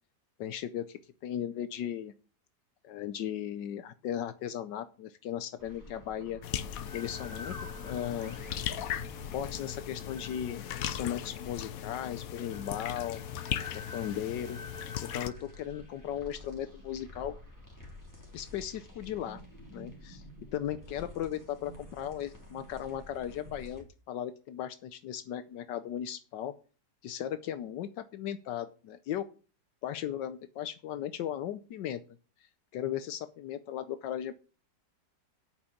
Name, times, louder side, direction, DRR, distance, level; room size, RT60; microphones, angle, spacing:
voice 1, 0.4-2.1 2.8-6.4 6.9-7.6 7.8-8.4 9.3-13.2 13.9-14.6 15.0-17.4 18.3-19.4 19.7-20.2 20.5-26.6 27.0-29.3 29.8-32.0 32.7-34.3, left 10 dB, 80° left, 12 dB, 1.4 m, -37 dB
sound 1, 5.6-23.8, left 1 dB, 10° left, 3.1 m, -48 dB
sound 2, 6.4-15.3, left 10 dB, 65° left, 1.0 m, -38 dB
8.8 x 6.4 x 8.4 m, 0.37 s
omnidirectional pair, 1.9 m